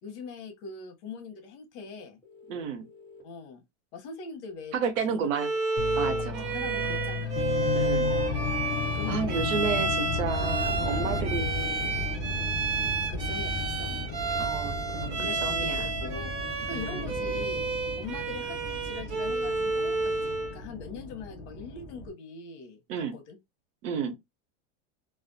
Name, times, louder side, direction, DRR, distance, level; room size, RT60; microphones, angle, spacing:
voice 1, 0.0-2.2 3.2-3.6 3.9-4.7 5.1-5.2 6.0-6.3 6.5-8.2 8.9-9.5 10.5-10.6 12.2-12.5 13.1-13.5 13.8-14.1 15.2-16.3 16.6-17.6 18.0-23.4, left 4 dB, 65° left, 0.9 m, -42 dB
sound 1, 2.2-3.2 5.2-6.1 8.1-9.1 11.0-12.0 13.9-14.9 16.9-17.3, left 4 dB, 5° left, 0.9 m, -51 dB
voice 2, 2.5-2.8 4.7-5.5 6.0-6.5 7.7-8.1 9.1-11.9 13.0-13.2 14.4-15.9 16.7-17.0 22.9-23.1 23.8-24.2, right 6 dB, 85° right, 0.8 m, -32 dB
Bowed string instrument, 5.3-20.6, right 3 dB, 30° right, 0.4 m, -31 dB
sound 2, 5.8-22.1, left 3 dB, 30° left, 0.4 m, -34 dB
2.3 x 2.0 x 2.6 m
supercardioid pair, 160°, 37 cm